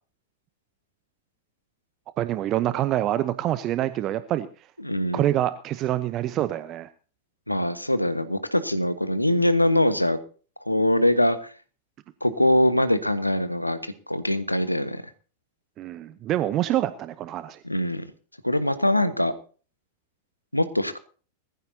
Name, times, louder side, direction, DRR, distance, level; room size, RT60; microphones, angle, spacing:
voice 1, 2.2-4.5 5.1-6.9 15.8-17.6, right 13 dB, 35° right, 14 dB, 0.8 m, -26 dB
voice 2, 4.8-5.2 7.5-10.2 10.7-11.4 12.2-15.0 17.6-18.1 18.4-19.3 20.5-21.0, left 1 dB, 85° left, 12 dB, 1.3 m, -23 dB
20.5 x 14.5 x 2.8 m, 0.38 s
figure-of-eight pair, 90°, 0 cm